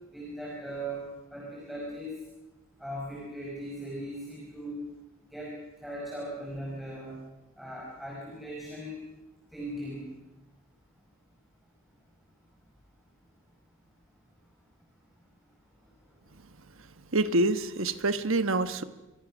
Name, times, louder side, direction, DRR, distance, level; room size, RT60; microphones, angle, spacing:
voice 1, 0.1-1.0 1.3-2.1 2.8-4.8 5.3-5.5 5.8-7.2 7.6-9.0 9.5-10.1, right 1 dB, ahead, -4 dB, 5.2 m, -38 dB
voice 2, 17.1-18.8, right 2 dB, 65° right, 10 dB, 1.3 m, -26 dB
27.5 x 23.0 x 6.3 m, 1.1 s
head